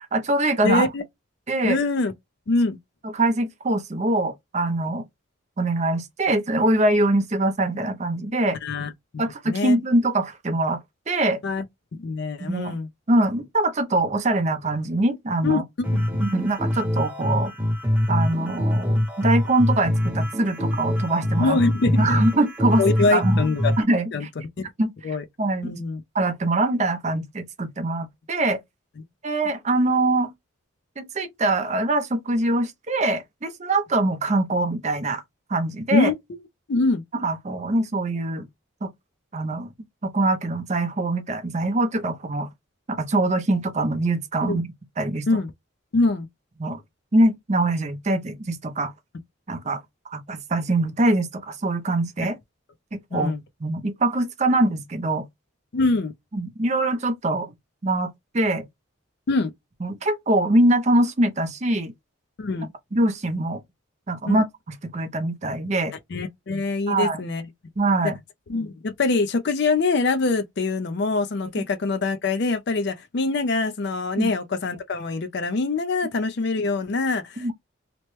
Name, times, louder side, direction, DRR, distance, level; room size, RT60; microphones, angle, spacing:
voice 1, 0.1-0.9 1.5-1.8 3.0-5.0 5.6-8.6 9.2-10.8 11.1-11.4 12.4-12.8 13.1-15.6 16.2-17.5 18.1-21.6 22.0-22.8 23.1-23.4 23.8-24.3 24.8-25.7 26.1-28.6 29.2-30.3 31.0-35.2 35.5-36.1 37.1-38.5 38.8-38.9 39.3-39.7 40.0-42.5 42.9-44.7 45.0-45.3 46.6-46.8 47.1-48.9 49.5-49.8 50.1-52.4 52.9-53.3 53.6-55.3 56.3-57.5 57.8-58.7 59.8-61.9 62.9-63.6 64.1-64.4 64.9-66.0 66.9-67.2 67.8-68.2 74.2-74.3 77.4-77.5, right 2 dB, 35° right, 0.5 m, -23 dB
voice 2, 0.6-1.0 1.6-2.1 2.5-2.8 8.6-9.8 11.4-11.6 11.9-12.9 15.4-15.6 15.9-16.0 21.4-22.2 22.8-23.7 24.1-24.6 25.0-25.2 25.6-26.0 35.9-36.1 36.7-37.0 44.4-44.6 45.3-45.5 45.9-46.3 53.1-53.4 55.7-56.1 59.3-59.5 62.4-62.7 64.3-64.4 66.1-67.4 68.5-77.5, left 3 dB, 55° left, 0.4 m, -24 dB
sound 1, 15.8-23.8, left 1 dB, 10° right, 0.9 m, -24 dB
2.9 x 2.1 x 3.1 m
head